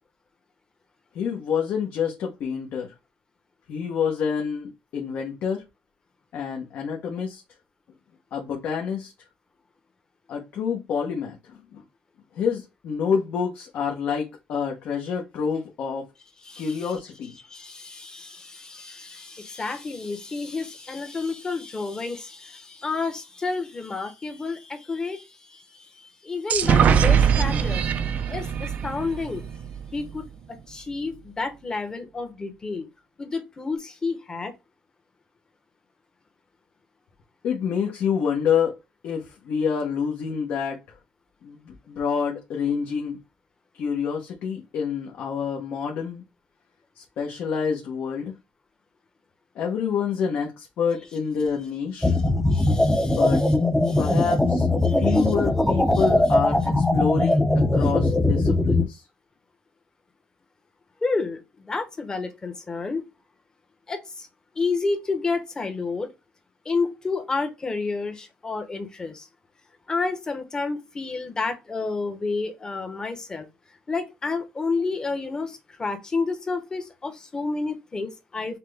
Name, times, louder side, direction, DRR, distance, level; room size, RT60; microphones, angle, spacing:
voice 1, 1.1-2.9 3.7-5.6 6.3-7.4 8.3-9.1 10.3-11.8 12.3-16.0 16.6-17.3 37.4-38.8 39.0-41.0 41.4-43.2 43.7-46.2 47.0-48.3 49.5-52.1 53.0-53.4 54.0-54.7 55.0-57.4 57.7-59.0, left 6 dB, 60° left, 1.0 m, -27 dB
voice 2, 16.4-16.9 17.5-29.5 29.9-32.9 33.2-34.5 52.1-52.2 52.5-53.5 53.9-54.1 54.8-55.3 55.9-56.0 61.0-63.0 63.9-64.3 64.6-66.1 66.6-69.3 69.9-73.5 73.9-78.6, left 4 dB, 20° left, 1.0 m, -30 dB
sound 1, 26.5-30.2, right 7 dB, 50° right, 0.5 m, -22 dB
sound 2, 52.0-58.8, left 2 dB, 5° left, 0.6 m, -20 dB
5.8 x 2.2 x 3.4 m
cardioid pair, 125°, 3 cm